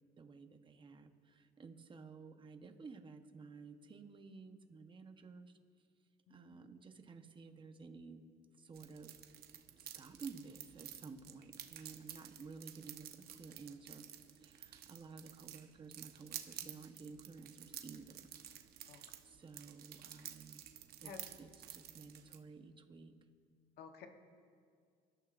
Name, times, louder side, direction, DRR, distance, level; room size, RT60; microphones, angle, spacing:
voice 1, 0.2-5.6 6.3-8.2 8.6-9.1 9.8-14.1 14.4-18.3 18.8-20.6 21.0-23.1, right 4 dB, 30° right, 7 dB, 1.0 m, -53 dB
voice 2, 6.3-6.5 18.9-19.0 21.0-21.2 23.8-24.1, left 7 dB, 70° left, 5 dB, 1.1 m, -52 dB
sound 1, 8.7-22.4, right 10 dB, 65° right, 0.9 m, -52 dB
23.5 x 12.5 x 2.5 m, 2.1 s
cardioid pair, 110°, 17 cm